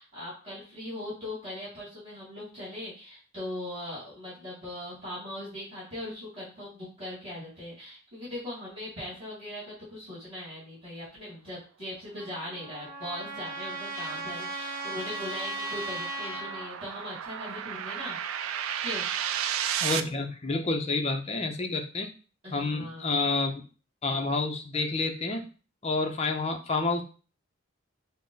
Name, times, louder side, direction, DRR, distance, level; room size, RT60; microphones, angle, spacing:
voice 1, 0.0-18.2 18.8-19.1 22.4-23.2, left 1 dB, 25° right, -9 dB, 2.5 m, -40 dB
Trumpet, 12.2-16.7, right 2 dB, 45° right, 1.0 m, -37 dB
sound 1, 13.1-20.0, right 9 dB, 85° right, 0.4 m, -34 dB
voice 2, 19.8-22.1 22.5-23.5 24.0-25.4 25.8-27.0, left 3 dB, 30° left, 4 dB, 0.6 m, -29 dB
6.1 x 2.1 x 3.9 m, 0.36 s
head